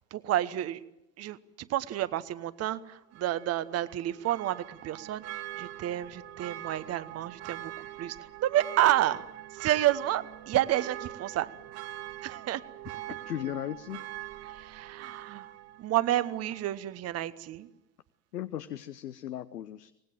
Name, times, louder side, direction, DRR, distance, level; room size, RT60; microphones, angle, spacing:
voice 1, 0.1-0.8 1.2-9.2 9.5-11.5 12.2-12.6 14.4-15.5 15.8-17.7, right 13 dB, 30° right, 14 dB, 1.1 m, -30 dB
Church bell, 3.1-16.8 17.2-17.3, right 14 dB, 50° right, 2.2 m, -43 dB
voice 2, 13.1-14.1 18.3-19.9, left 12 dB, 75° left, 14 dB, 0.9 m, -37 dB
25.5 x 19.5 x 9.1 m, 0.89 s
figure-of-eight pair, 75°, 48 cm